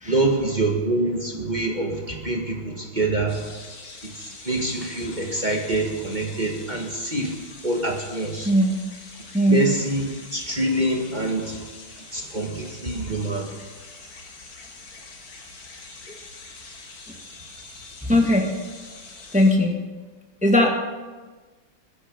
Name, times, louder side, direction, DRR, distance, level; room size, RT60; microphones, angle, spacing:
voice 1, 0.1-3.5 4.0-7.4 7.6-8.5 9.5-11.6 12.1-13.5, right 2 dB, 20° right, 1 dB, 1.7 m, -25 dB
sound 1, 3.3-19.5, left 3 dB, 70° left, 3.1 m, -44 dB
voice 2, 8.4-8.8 9.3-9.7 17.1-17.2 18.0-18.5 19.3-19.8 20.4-20.7, left 1 dB, 5° right, 2 dB, 1.5 m, -19 dB
22.0 x 11.0 x 5.4 m, 1.3 s
omnidirectional pair, 2.3 m